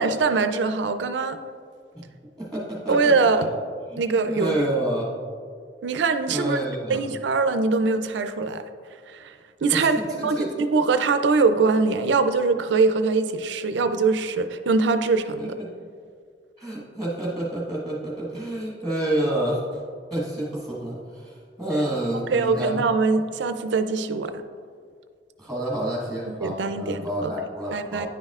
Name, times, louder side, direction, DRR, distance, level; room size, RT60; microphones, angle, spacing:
voice 1, 0.0-1.4 2.9-3.5 4.0-4.7 5.8-6.6 6.9-8.6 9.1-15.6 22.1-24.4 26.3-27.3 27.7-28.1, right 4 dB, 90° right, 9 dB, 0.4 m, -23 dB
voice 2, 2.4-3.4 3.9-5.1 6.3-7.0 9.7-10.5 15.4-15.7 16.6-19.8 20.1-22.8 25.4-28.1, right 1 dB, 5° left, -5 dB, 1.4 m, -29 dB
9.9 x 5.4 x 2.4 m, 2.1 s
head